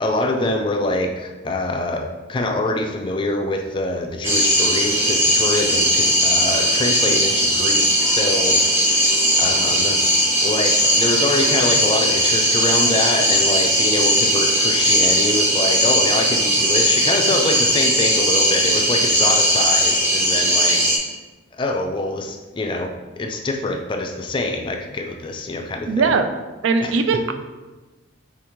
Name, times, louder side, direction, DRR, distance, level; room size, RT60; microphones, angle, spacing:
voice 1, 0.0-10.0 10.4-20.8 21.5-26.1 26.8-26.9, left 2 dB, 25° left, 3 dB, 0.3 m, -25 dB
sound 1, 4.2-21.0, equal, 10° right, 0.6 m, -18 dB
voice 2, 25.9-26.3 26.6-27.3, right 4 dB, 70° right, 8 dB, 0.4 m, -19 dB
4.9 x 3.4 x 3.0 m, 1.2 s
head